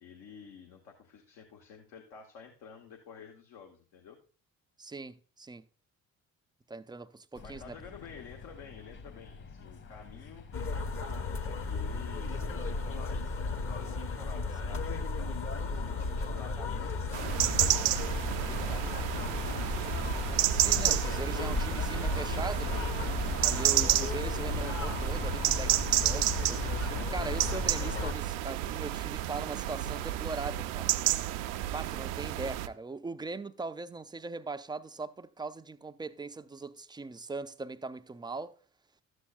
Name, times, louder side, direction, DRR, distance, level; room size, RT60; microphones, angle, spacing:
voice 1, 0.0-4.2 7.4-10.5 11.4-15.4 15.8-17.7 18.4-20.1, left 6 dB, 65° left, 1.2 m, -50 dB
voice 2, 4.8-5.7 6.7-7.8 20.5-22.8 23.4-30.9 31.7-38.5, right 3 dB, 10° right, 0.4 m, -40 dB
sound 1, 7.3-26.7, left 4 dB, 50° left, 2.0 m, -50 dB
sound 2, 10.5-28.1, left 3 dB, 35° left, 1.0 m, -34 dB
sound 3, 17.1-32.7, right 14 dB, 75° right, 0.6 m, -31 dB
12.5 x 8.1 x 2.4 m
hypercardioid pair, 50°, 40 cm